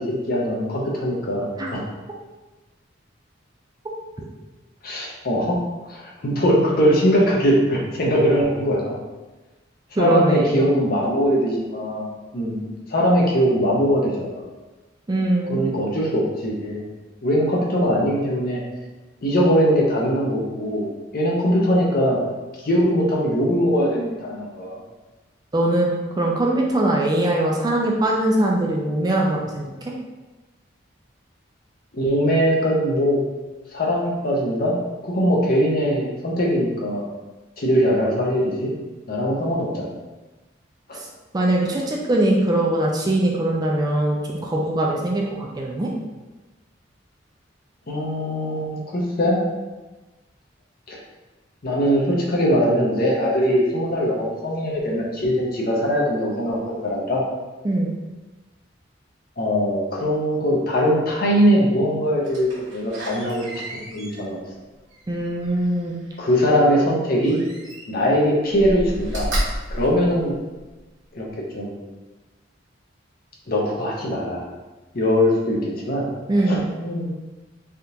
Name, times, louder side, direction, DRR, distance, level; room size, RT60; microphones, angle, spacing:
voice 1, 0.0-1.8 4.8-5.6 5.9-9.0 9.9-12.0 12.3-14.4 15.5-16.8 17.2-18.6 19.2-20.9 21.1-22.2 22.6-24.8 31.9-33.2 33.7-34.8 35.0-37.1 37.6-38.7 39.1-39.9 40.9-41.0 47.9-49.4 50.9-51.0 51.6-57.2 59.4-63.6 63.9-64.4 66.2-67.4 67.9-69.3 69.7-70.3 71.1-71.3 71.5-71.7 73.5-74.4 74.9-76.1 76.5-77.1, equal, 50° left, -2 dB, 0.7 m, -21 dB
voice 2, 10.0-10.6 15.1-15.6 25.5-25.9 26.2-29.7 41.3-45.9 57.6-57.9 65.1-66.0 76.3-76.6, right 1 dB, 20° right, -2 dB, 0.3 m, -21 dB
Slam, 62.2-66.1 67.2-68.1 68.5-70.8 71.3-71.4, equal, 80° right, 1.1 m, -32 dB
3.5 x 2.4 x 2.8 m, 1.2 s
head